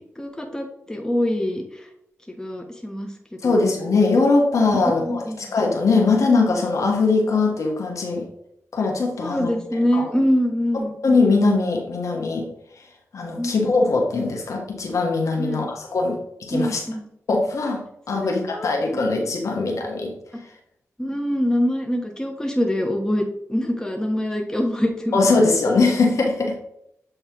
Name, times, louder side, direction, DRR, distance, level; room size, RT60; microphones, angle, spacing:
voice 1, 0.2-1.6 2.3-3.1 3.4-3.6 5.0-5.4 9.2-10.9 13.4-13.6 15.4-15.7 16.5-17.0 18.2-18.7 20.3-20.4 21.0-25.2, equal, 10° left, 2 dB, 1.2 m, -24 dB
voice 2, 3.4-8.3 8.7-10.1 10.7-12.5 13.1-16.8 17.3-17.8 18.1-20.1 25.1-26.6, left 3 dB, 75° left, 0 dB, 1.4 m, -21 dB
7.9 x 3.3 x 4.5 m, 0.74 s
cardioid pair, 55°, 5 cm